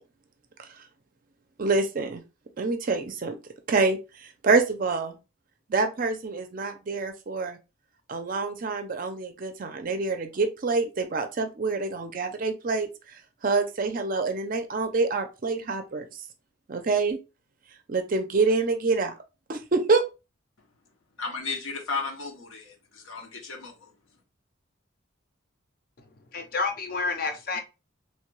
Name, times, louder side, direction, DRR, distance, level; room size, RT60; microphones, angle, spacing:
voice 1, 1.6-2.2 2.6-3.4 3.7-5.2 5.7-7.6 8.1-12.9 13.4-16.1 16.7-17.2 17.9-19.1 19.5-20.0, right 3 dB, 45° right, 0.4 m, -26 dB
voice 2, 21.2-23.9, left 4 dB, 80° left, 0.8 m, -34 dB
voice 3, 26.3-27.6, left 4 dB, 45° left, 0.6 m, -29 dB
3.1 x 2.2 x 3.0 m
head